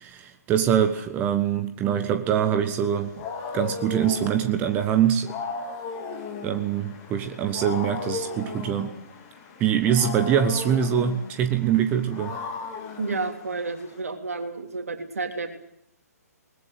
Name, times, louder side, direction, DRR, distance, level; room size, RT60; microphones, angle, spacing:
voice 1, 0.0-3.1 3.5-5.3 6.4-8.9 9.6-12.4, right 9 dB, 20° right, 8 dB, 1.3 m, -24 dB
Wild animals, 2.8-14.0, left 4 dB, 25° left, 4.2 m, -36 dB
voice 2, 13.0-15.5, right 3 dB, 60° right, 5 dB, 3.4 m, -31 dB
22.0 x 20.0 x 8.1 m, 0.73 s
figure-of-eight pair, 130°, 9 cm